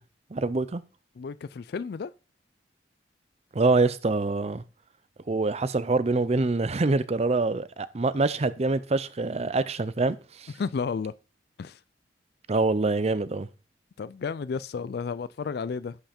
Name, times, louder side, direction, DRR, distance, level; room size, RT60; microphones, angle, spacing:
voice 1, 0.3-0.8 3.5-4.6 5.3-10.5 12.5-13.5, right 3 dB, 35° right, 0.5 m, -25 dB
voice 2, 1.2-2.1 10.6-11.1 11.6-11.8 14.0-16.0, left 5 dB, 60° left, 0.4 m, -32 dB
11.0 x 5.6 x 4.3 m
head